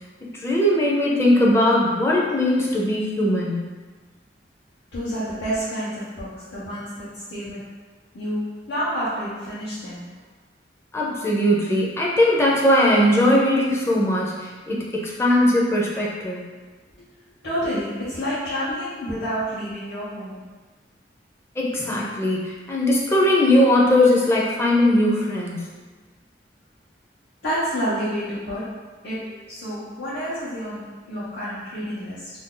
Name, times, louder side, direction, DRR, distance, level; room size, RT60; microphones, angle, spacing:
voice 1, 0.4-3.6 10.9-16.4 21.6-25.6, left 1 dB, 15° left, -4 dB, 0.5 m, -19 dB
voice 2, 4.9-7.7 8.1-10.1 17.4-20.4 27.4-28.8 29.0-32.3, equal, 80° left, -11 dB, 0.9 m, -29 dB
2.6 x 2.3 x 3.7 m, 1.3 s
head